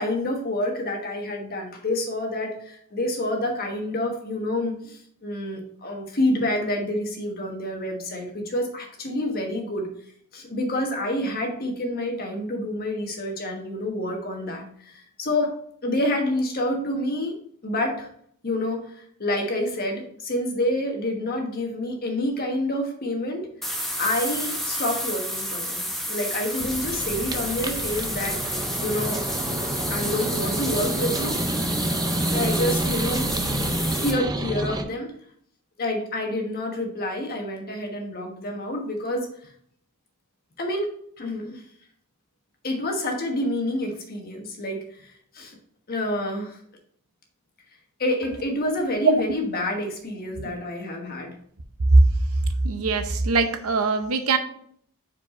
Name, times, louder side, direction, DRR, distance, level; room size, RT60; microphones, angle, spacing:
voice 1, 0.0-9.9 10.3-15.5 15.8-17.3 17.6-18.1 18.4-23.4 23.7-29.2 29.9-31.4 32.3-33.3 33.8-35.1 35.8-39.3 40.6-40.9 41.2-41.6 42.6-45.6 45.9-46.6 48.0-51.3, left 1 dB, 45° left, 2 dB, 1.3 m, -28 dB
sound 1, 23.6-34.1, equal, ahead, 0.8 m, -30 dB
sound 2, 26.6-34.8, right 2 dB, 20° right, 0.5 m, -28 dB
voice 2, 52.6-54.4, right 3 dB, 80° right, 8 dB, 0.7 m, -20 dB
4.8 x 4.7 x 4.2 m, 0.63 s
head